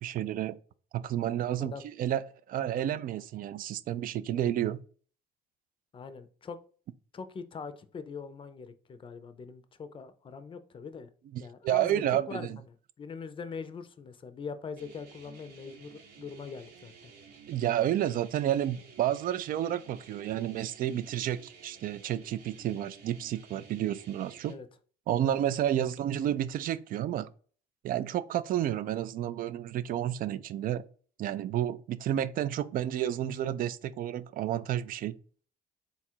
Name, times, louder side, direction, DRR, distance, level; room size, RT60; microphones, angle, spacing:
voice 1, 0.0-0.6 0.9-1.7 2.0-2.2 2.5-4.8 11.3-12.5 17.5-24.5 25.1-27.3 27.8-30.8 31.2-35.2, right 11 dB, 55° right, 0.4 m, -30 dB
voice 2, 5.9-6.6 7.1-11.1 11.4-17.1 24.5-24.7 25.8-26.0, left 5 dB, 30° left, 0.5 m, -42 dB
sound 1, 14.8-24.5, right 5 dB, 75° right, 1.0 m, -53 dB
4.0 x 2.4 x 4.3 m
cardioid pair, 110°, 17 cm